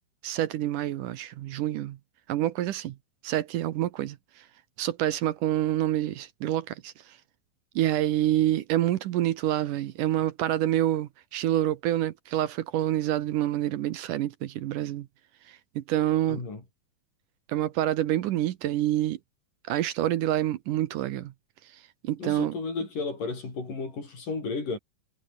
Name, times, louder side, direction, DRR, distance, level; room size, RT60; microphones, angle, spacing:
voice 1, 0.2-2.0 2.3-3.0 3.2-4.2 4.8-6.9 7.8-15.1 15.5-16.4 17.5-19.2 19.7-21.3 22.0-22.5, right 13 dB, 70° right, 2.3 m, -27 dB
voice 2, 16.3-16.6 22.2-24.8, left 4 dB, 60° left, 8.3 m, -33 dB
omnidirectional pair, 4.3 m